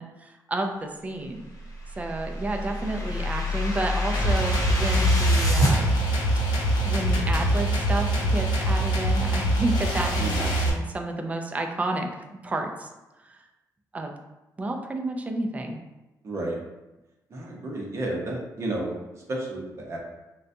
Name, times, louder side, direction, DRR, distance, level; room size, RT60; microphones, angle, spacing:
voice 1, 0.0-1.4 2.0-5.9 6.8-12.1 12.4-12.9 13.3-13.4 13.9-14.1 14.6-15.8, right 2 dB, 20° right, 3 dB, 0.4 m, -30 dB
sound 1, 1.7-5.7, left 1 dB, 55° left, 0.9 m, -26 dB
sound 2, 4.1-10.7, right 1 dB, 80° left, 0.7 m, -24 dB
voice 2, 16.2-16.6 17.3-20.0, right 2 dB, 40° right, -2 dB, 0.8 m, -32 dB
3.9 x 2.2 x 2.6 m, 1.0 s
cardioid pair, 150°, 7 cm